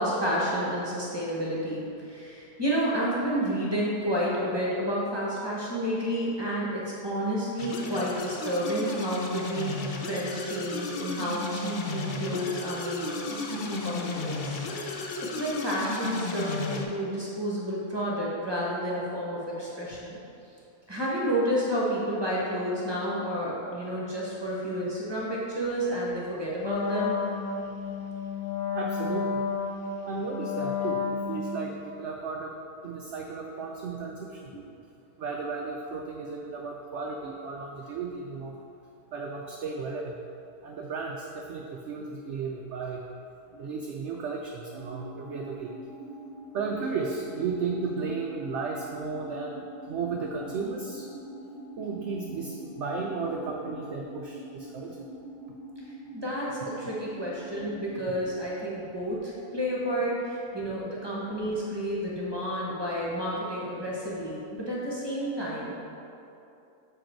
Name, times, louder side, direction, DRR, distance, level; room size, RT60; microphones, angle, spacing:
voice 1, 0.0-14.6 14.9-15.1 15.3-20.2 20.9-27.2 56.1-65.7, equal, 20° right, -6 dB, 1.1 m, -30 dB
sound 1, 7.6-16.8, left 3 dB, 85° left, 0.4 m, -34 dB
Wind instrument woodwind instrument, 26.6-31.7, left 5 dB, 70° left, 1.1 m, -31 dB
voice 2, 28.7-29.4 30.1-32.5 32.8-34.5 35.2-38.6 39.1-40.2 40.6-43.0 43.6-45.7 46.5-51.1 51.8-55.0, right 4 dB, 65° right, 0 dB, 0.7 m, -34 dB
sound 2, 44.7-58.2, right 1 dB, 30° left, 0.8 m, -44 dB
6.7 x 5.0 x 4.4 m, 2.7 s
omnidirectional pair, 1.7 m